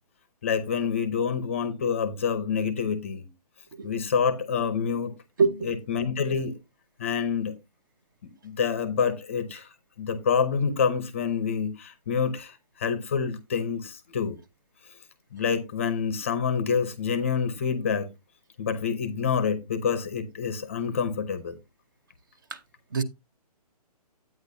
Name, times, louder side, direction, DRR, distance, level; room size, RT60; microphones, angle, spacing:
voice 1, 0.4-3.3 3.8-5.1 5.7-6.6 7.0-7.6 8.2-9.7 10.0-14.4 15.3-18.1 18.6-21.6, left 6 dB, 20° left, 0.7 m, -27 dB
voice 2, 5.4-5.7 22.5-22.6 22.9-23.0, right 4 dB, 30° right, 0.8 m, -25 dB
10.0 x 8.9 x 2.6 m
hypercardioid pair, 180°, 20 cm